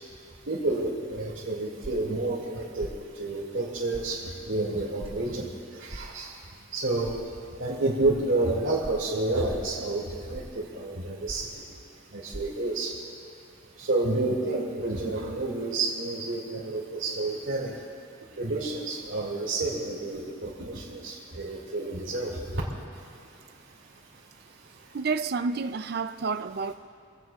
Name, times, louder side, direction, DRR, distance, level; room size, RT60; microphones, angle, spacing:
voice 1, 0.5-2.9 3.2-4.2 4.5-5.5 5.8-6.3 6.7-7.1 7.6-11.5 12.1-12.9 13.8-17.7 18.4-22.4, right 2 dB, 75° right, -7 dB, 2.4 m, -29 dB
sound 1, 1.8-2.1 2.8-3.0 3.9-4.1 5.0-5.2 5.9-6.1 7.0-7.2 8.0-8.2 8.8-9.0 9.5-9.7 10.3-10.6 11.3-11.6 12.3-12.4, right 1 dB, 25° right, 0.8 m, -40 dB
voice 2, 24.9-26.7, right 4 dB, 50° right, 12 dB, 0.4 m, -29 dB
25.0 x 17.0 x 2.4 m, 2.3 s
head